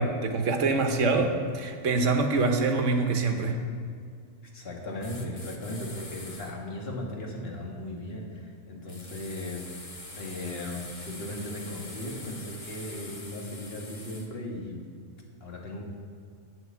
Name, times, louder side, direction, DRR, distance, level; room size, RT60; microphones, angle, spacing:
voice 1, 0.0-3.6, right 3 dB, 65° right, 5 dB, 1.4 m, -25 dB
voice 2, 4.5-9.9 10.1-14.8 15.4-15.8, left 1 dB, 45° left, -1 dB, 1.9 m, -37 dB
sound 1, 5.0-6.5 8.9-14.3, left 2 dB, 25° left, 1.1 m, -44 dB
10.0 x 7.9 x 7.4 m, 2.2 s
omnidirectional pair, 1.4 m